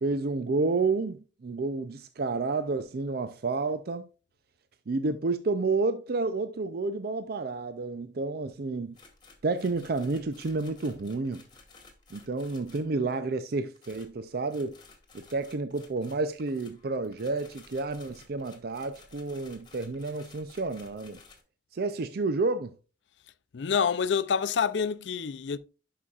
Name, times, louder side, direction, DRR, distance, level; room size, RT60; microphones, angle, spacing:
voice 1, 0.0-4.1 4.9-8.9 9.4-11.4 12.1-14.7 15.1-21.2 21.7-22.7, right 3 dB, 60° right, 0.5 m, -30 dB
sound 1, 8.9-13.0 13.7-21.4, left 4 dB, 25° left, 1.7 m, -55 dB
voice 2, 23.5-25.6, left 6 dB, 85° left, 0.5 m, -27 dB
11.0 x 5.6 x 2.4 m
head